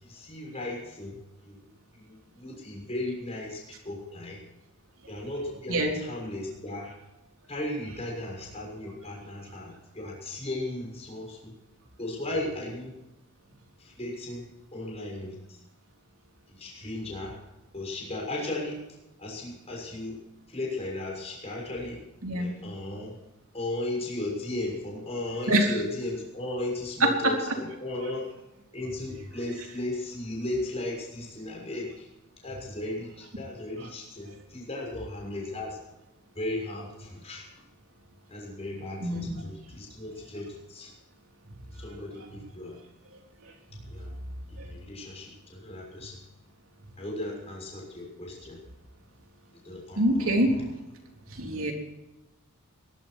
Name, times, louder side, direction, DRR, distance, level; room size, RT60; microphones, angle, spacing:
voice 1, 0.0-4.4 5.1-6.9 7.5-11.5 12.0-12.9 13.8-15.6 16.5-17.3 17.7-18.8 19.2-20.2 20.5-22.0 22.3-23.2 23.5-28.3 28.7-32.0 32.4-35.8 36.3-37.5 38.3-40.9 41.7-42.8 43.9-44.2 44.5-46.2 47.0-48.6 49.5-50.7, left 1 dB, 30° left, -1 dB, 6.5 m, -36 dB
voice 2, 27.0-27.3 39.0-39.4 44.6-44.7 50.0-50.5 51.3-51.7, right 1 dB, 65° right, 2 dB, 3.7 m, -24 dB
21.5 x 12.5 x 4.5 m, 0.97 s
head